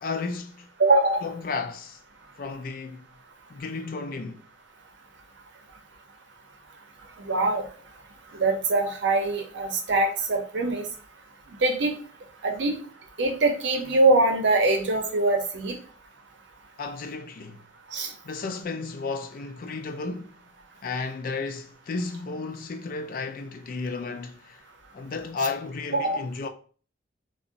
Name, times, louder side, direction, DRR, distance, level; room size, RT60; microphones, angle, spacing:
voice 1, 0.0-0.7 1.2-2.0 2.4-3.0 3.5-4.4 16.8-17.6 18.2-20.3 20.8-24.6 24.9-26.5, left 4 dB, 45° left, 0.3 m, -33 dB
voice 2, 0.8-1.3 7.2-7.6 8.3-10.8 11.6-11.9 12.4-12.8 13.2-15.8 17.9-18.1 25.9-26.2, right 2 dB, 65° right, 0.6 m, -23 dB
2.5 x 2.0 x 3.8 m
head